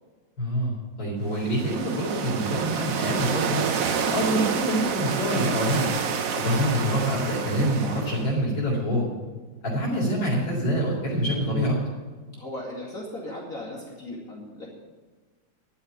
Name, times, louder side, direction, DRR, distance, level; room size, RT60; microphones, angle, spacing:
voice 1, 0.4-3.6 4.1-5.9 6.4-9.0 9.6-11.8, equal, 80° left, -7 dB, 4.6 m, -26 dB
sound 1, 1.3-8.4, right 6 dB, 55° right, 1.1 m, -28 dB
voice 2, 12.4-14.7, left 1 dB, 45° left, -4 dB, 2.8 m, -37 dB
12.0 x 7.2 x 8.9 m, 1.4 s
omnidirectional pair, 2.1 m